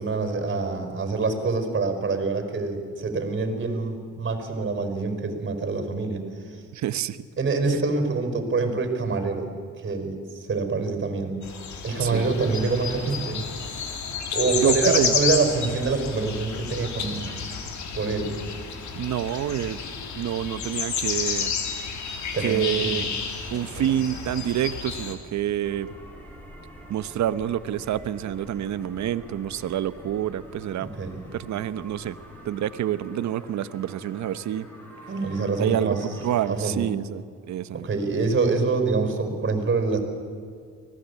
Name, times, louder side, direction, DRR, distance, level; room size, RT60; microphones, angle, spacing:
voice 1, 0.0-6.6 7.4-9.5 9.8-11.4 11.8-13.5 14.3-17.3 17.9-18.4 22.3-23.1 23.7-23.8 30.8-31.2 35.1-36.9 37.7-40.0, right 4 dB, 40° right, 7 dB, 4.9 m, -26 dB
voice 2, 6.7-7.2 12.0-12.3 14.6-15.2 19.0-19.8 20.2-21.5 22.4-23.0 23.5-25.9 26.9-30.9 31.3-32.2 32.4-34.7 35.6-37.9, right 11 dB, 65° right, 15 dB, 1.0 m, -27 dB
sound 1, 11.4-25.1, left 6 dB, 70° left, 3.2 m, -30 dB
sound 2, 25.6-36.6, equal, 5° left, 7.1 m, -46 dB
24.5 x 18.0 x 8.4 m, 2.1 s
cardioid pair, 90°, 30 cm